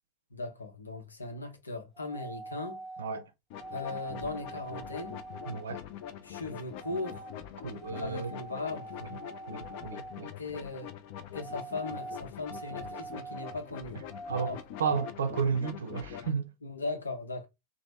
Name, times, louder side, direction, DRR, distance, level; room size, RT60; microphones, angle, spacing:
voice 1, 0.3-2.8 3.7-5.2 6.2-7.3 7.9-8.9 10.4-10.9 11.3-14.0 14.4-14.6 16.6-17.5, left 3 dB, 75° left, 0.8 m, -38 dB
sound 1, 1.9-3.1 3.6-5.7 6.8-7.4 7.7-10.3 11.3-13.6 14.1-15.1, right 3 dB, 5° right, 0.7 m, -44 dB
sound 2, 3.5-16.3, left 10 dB, 45° left, 0.4 m, -44 dB
voice 2, 5.5-5.8 7.6-8.3 9.5-10.3 14.3-14.5 14.8-16.5, right 6 dB, 65° right, 0.5 m, -32 dB
2.9 x 2.1 x 3.3 m
figure-of-eight pair, 90°, 0 cm